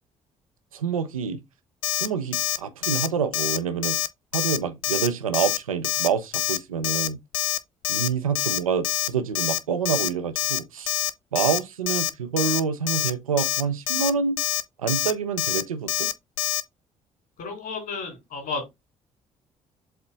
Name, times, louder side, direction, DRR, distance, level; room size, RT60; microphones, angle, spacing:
voice 1, 0.7-1.4 1.9-4.0 4.3-7.2 7.9-11.0 11.3-14.4 14.8-16.1, right 6 dB, 80° right, 0.6 m, -27 dB
Alarm, 1.8-2.1 2.3-2.6 2.8-3.1 3.3-3.6 3.8-4.1 4.3-4.6 4.8-5.1 5.3-5.6 5.8-6.1 6.3-6.6 6.8-7.1 7.3-7.6 7.8-8.1 8.3-8.6 8.8-9.1 9.3-9.6 9.9-10.1 10.4-10.6 10.9-11.1 11.4-11.6 11.9-12.1 12.4-12.6 12.9-13.1 13.4-13.6 13.9-14.1 14.4-14.6 14.9-15.1 15.4-15.6 15.9-16.1 16.4-16.6, left 15 dB, 70° left, 0.5 m, -25 dB
voice 2, 17.4-18.7, left 4 dB, 55° left, 3.5 m, -32 dB
7.6 x 3.8 x 3.7 m
figure-of-eight pair, 45°, 17 cm